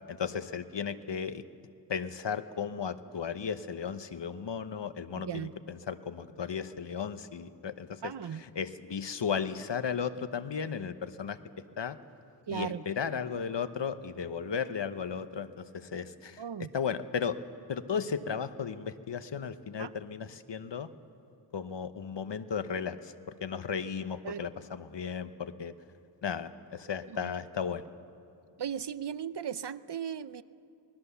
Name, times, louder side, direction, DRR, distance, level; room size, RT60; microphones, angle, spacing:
voice 1, 0.1-1.4 1.9-8.1 8.4-11.4 11.8-12.0 12.5-16.4 16.7-17.4 17.7-20.9 21.5-23.1 23.4-25.7 26.2-27.8, left 6 dB, 75° left, 11 dB, 1.0 m, -35 dB
voice 2, 5.2-5.5 8.0-8.4 12.5-12.8 16.4-16.7 19.8-19.9 24.2-24.5 27.1-27.3 28.6-30.4, right 8 dB, 70° right, 16 dB, 0.7 m, -37 dB
26.0 x 20.0 x 6.9 m, 2.7 s
wide cardioid pair, 50°, 43 cm